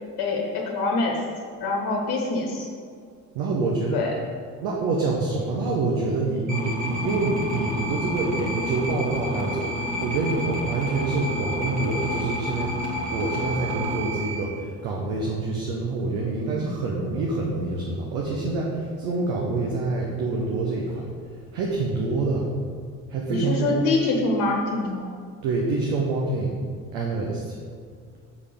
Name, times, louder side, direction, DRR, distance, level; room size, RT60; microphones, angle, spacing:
voice 1, 0.2-1.2 1.6-2.7 3.9-4.1 23.3-25.1, left 3 dB, 55° left, -1 dB, 1.4 m, -25 dB
voice 2, 3.3-4.0 4.6-12.7 13.1-21.0 21.5-22.5 23.1-23.8 25.4-26.5 26.9-27.6, right 3 dB, 65° right, -2 dB, 1.3 m, -26 dB
sound 1, 6.5-14.4, equal, 40° right, 2.1 m, -30 dB
7.2 x 6.7 x 5.3 m, 2.2 s
hypercardioid pair, 55°, 45 cm